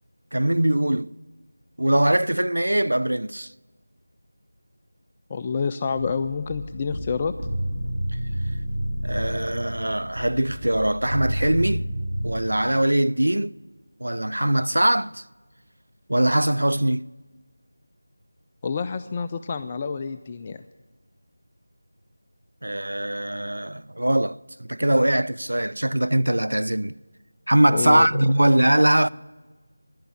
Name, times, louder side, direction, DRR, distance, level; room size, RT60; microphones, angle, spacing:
voice 1, 0.3-1.1 1.8-3.5 9.0-11.9 12.2-13.6 14.0-15.2 16.1-17.0 22.6-27.0 27.5-29.1, right 1 dB, 85° right, 0.4 m, -22 dB
voice 2, 5.3-7.3 18.6-20.6 27.7-28.1, left 5 dB, 20° left, 0.3 m, -28 dB
sound 1, 5.9-12.3, equal, 60° right, 5.1 m, -30 dB
11.5 x 10.5 x 7.0 m
figure-of-eight pair, 170°, 0 cm